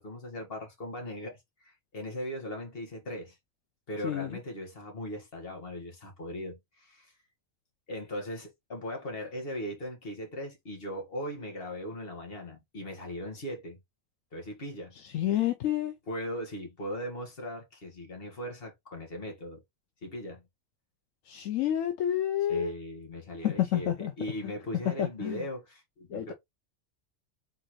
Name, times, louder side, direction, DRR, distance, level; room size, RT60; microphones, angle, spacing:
voice 1, 0.0-3.4 3.9-7.1 7.9-13.8 14.3-14.9 16.1-19.6 20.0-20.4 22.5-26.3, equal, 45° left, 1.8 m, -39 dB
voice 2, 4.0-4.4 15.1-15.9 21.3-22.7 23.4-24.1 25.0-25.4 26.1-26.3, left 11 dB, 75° left, 1.0 m, -29 dB
4.1 x 3.8 x 3.0 m
omnidirectional pair, 1.4 m